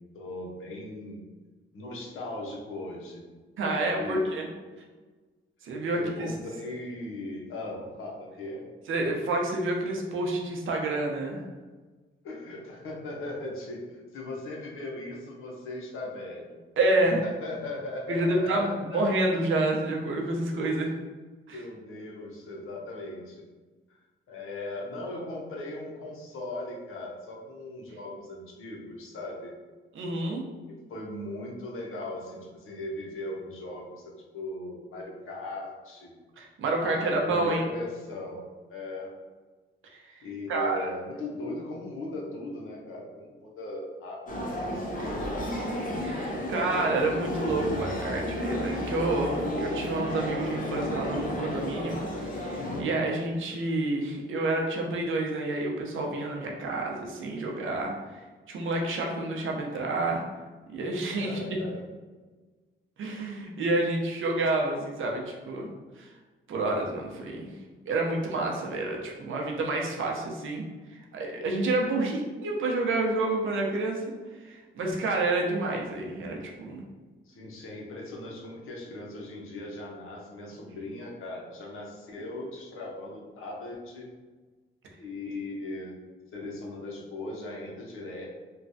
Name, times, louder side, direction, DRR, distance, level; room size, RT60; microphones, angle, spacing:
voice 1, 0.1-1.2 1.7-3.3 3.8-4.4 5.9-8.6 12.2-16.6 17.2-19.2 21.5-23.4 23.9-24.0 24.3-29.5 30.7-36.2 36.7-39.1 40.2-45.3 61.2-61.8 77.3-84.1 85.0-86.0 86.3-88.2, left 2 dB, 85° left, -2 dB, 0.7 m, -38 dB
voice 2, 3.6-4.5 5.6-6.3 8.9-11.4 16.8-17.2 18.1-20.9 21.5-21.6 29.9-30.4 36.4-37.7 39.9-40.2 40.5-40.9 46.0-57.9 58.5-60.2 60.7-61.4 63.0-65.7 66.0-66.1 66.5-67.5 67.9-70.6 70.9-74.1 74.4-76.8, right 2 dB, 70° right, 0 dB, 0.6 m, -29 dB
sound 1, 44.3-52.8, left 1 dB, 40° left, 0.5 m, -32 dB
3.1 x 2.2 x 2.6 m, 1.3 s
cardioid pair, 110°, 21 cm